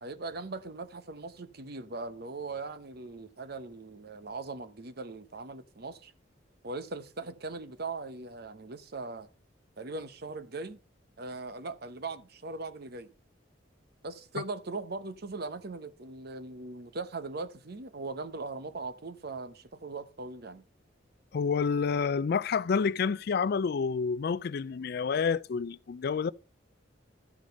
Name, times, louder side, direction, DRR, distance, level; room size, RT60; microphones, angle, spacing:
voice 1, 0.0-6.1 6.6-9.3 9.8-10.8 11.2-13.1 14.0-20.6, right 3 dB, 55° right, 0.9 m, -40 dB
voice 2, 21.3-26.3, left 5 dB, 55° left, 0.4 m, -29 dB
13.0 x 5.0 x 5.2 m
head